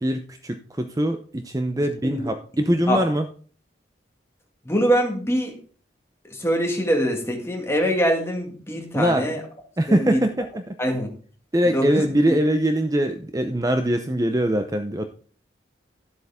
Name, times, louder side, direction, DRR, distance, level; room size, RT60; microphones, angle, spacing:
voice 1, 0.0-3.2 8.9-9.3 9.8-10.6 11.5-15.1, right 1 dB, 20° right, 7 dB, 0.6 m, -22 dB
voice 2, 2.6-3.0 4.7-5.5 6.2-9.4 9.9-10.2 10.8-11.1 11.7-12.4, equal, 15° left, 2 dB, 2.0 m, -24 dB
12.5 x 7.9 x 3.6 m, 0.43 s
head